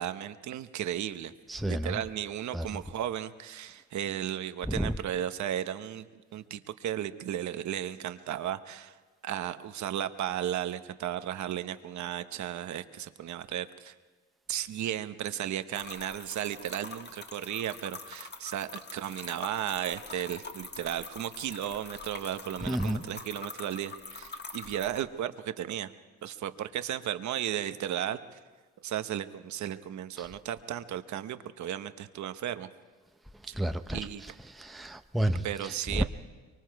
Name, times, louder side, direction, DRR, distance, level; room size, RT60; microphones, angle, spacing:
voice 1, 0.0-1.3 1.6-6.1 6.3-9.0 9.2-13.9 14.5-25.9 26.2-28.4 28.8-32.7 33.5-33.6 33.9-34.2 35.2-36.0, right 11 dB, 70° right, 1.0 m, -35 dB
voice 2, 1.5-2.0 2.5-2.8 4.7-5.0 22.6-23.0 30.2-30.3 33.3-36.0, equal, ahead, 0.7 m, -32 dB
sound 1, 15.7-25.0, left 4 dB, 35° left, 1.7 m, -45 dB
24.0 x 24.0 x 4.7 m
cardioid pair, 90°, 30 cm